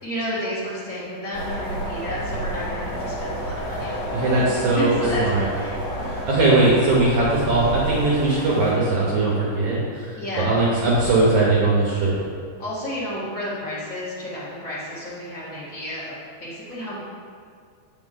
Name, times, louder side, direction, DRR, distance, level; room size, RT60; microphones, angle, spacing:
voice 1, 0.0-4.2 4.7-5.8 10.2-10.5 12.6-17.0, equal, 80° left, -11 dB, 0.7 m, -31 dB
sound 1, 1.3-8.7, equal, 60° left, 2.4 m, -30 dB
voice 2, 4.1-5.5 6.0-12.1, right 2 dB, 75° right, -5 dB, 1.8 m, -20 dB
8.4 x 6.1 x 3.7 m, 2.1 s
omnidirectional pair, 4.9 m